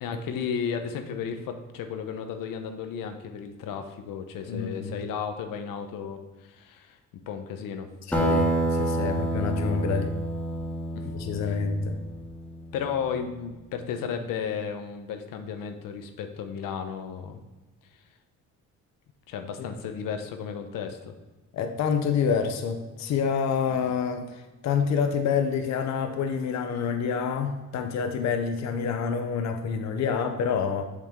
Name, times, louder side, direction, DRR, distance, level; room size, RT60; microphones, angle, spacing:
voice 1, 0.0-7.0 7.3-7.9 10.9-11.0 11.4-11.6 12.7-17.4 19.3-21.1 23.7-23.8, left 7 dB, 85° left, 6 dB, 0.9 m, -34 dB
voice 2, 4.5-4.9 8.1-10.1 11.1-11.9 21.5-30.8, left 6 dB, 55° left, 6 dB, 0.7 m, -27 dB
Acoustic guitar, 8.1-13.0, right 1 dB, 5° left, 1.1 m, -28 dB
7.3 x 6.1 x 3.6 m, 1.2 s
cardioid pair, 125°, 32 cm